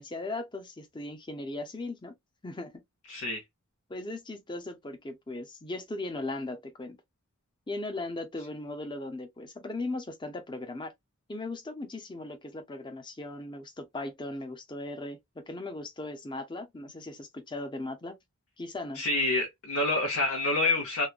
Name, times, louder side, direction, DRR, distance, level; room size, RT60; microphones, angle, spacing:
voice 1, 0.0-2.1 2.4-2.7 3.9-7.0 7.7-10.9 11.3-18.2 18.6-19.0, left 2 dB, 20° left, 0.5 m, -38 dB
voice 2, 3.1-3.4 18.9-21.1, left 2 dB, 90° left, 0.8 m, -27 dB
3.0 x 2.1 x 2.3 m
head